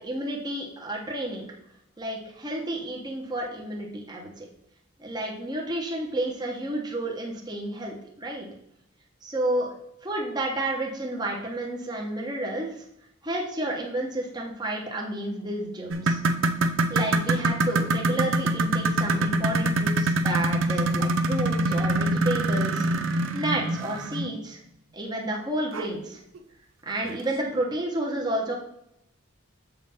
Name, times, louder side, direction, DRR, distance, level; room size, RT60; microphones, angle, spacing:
voice 1, 0.0-1.5 2.0-4.4 5.0-8.5 9.2-9.8 10.0-12.7 13.2-16.2 16.9-24.6 24.9-26.2 26.8-28.5, right 1 dB, 20° right, -1 dB, 1.0 m, -31 dB
sound 1, 15.9-24.3 25.7-25.9 26.3-26.4 27.1-27.2, right 2 dB, 70° right, 0.5 m, -25 dB
6.9 x 3.3 x 5.6 m, 0.77 s
head